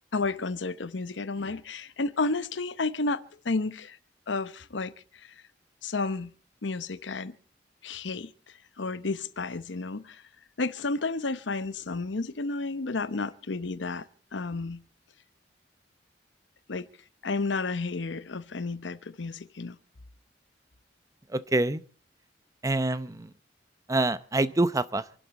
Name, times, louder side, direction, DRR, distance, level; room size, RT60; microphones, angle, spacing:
voice 1, 0.1-4.0 4.3-4.9 5.8-6.3 6.6-7.3 7.8-8.3 8.8-10.2 10.6-14.1 14.3-14.8 16.7-16.9 17.2-19.8, left 3 dB, 90° left, 0.9 m, -31 dB
voice 2, 21.3-21.8 22.6-23.3 23.9-25.0, right 2 dB, 20° right, 0.7 m, -26 dB
27.5 x 12.0 x 4.1 m
head